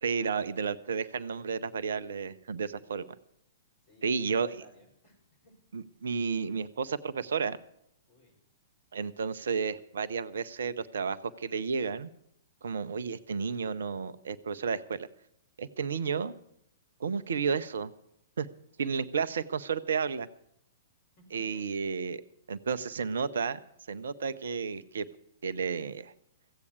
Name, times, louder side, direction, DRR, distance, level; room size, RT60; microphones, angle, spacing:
voice 1, 0.0-3.0 4.0-4.5 5.7-7.6 8.9-12.1 12.6-15.1 15.6-16.3 17.0-17.9 18.4-18.5 18.8-20.3 21.3-22.2 22.5-23.6 23.9-25.1 25.4-26.1, right 5 dB, 60° right, 15 dB, 0.6 m, -32 dB
voice 2, 3.8-5.6 8.1-8.4 21.2-21.6, equal, 40° left, 1 dB, 5.7 m, -57 dB
15.5 x 8.4 x 8.1 m, 0.74 s
figure-of-eight pair, 110°, 0 cm